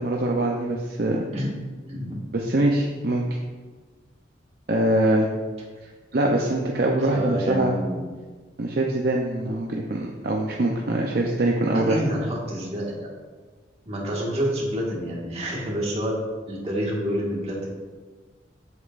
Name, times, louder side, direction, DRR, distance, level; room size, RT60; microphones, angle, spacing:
voice 1, 0.0-1.3 2.3-3.2 4.7-5.3 6.1-7.7 8.6-12.0, right 1 dB, 55° right, 0 dB, 0.6 m, -23 dB
voice 2, 1.8-2.2 7.0-8.1 11.7-13.1 13.8-16.2 16.5-17.7, equal, 35° right, -4 dB, 1.7 m, -28 dB
8.0 x 7.2 x 2.5 m, 1.4 s
head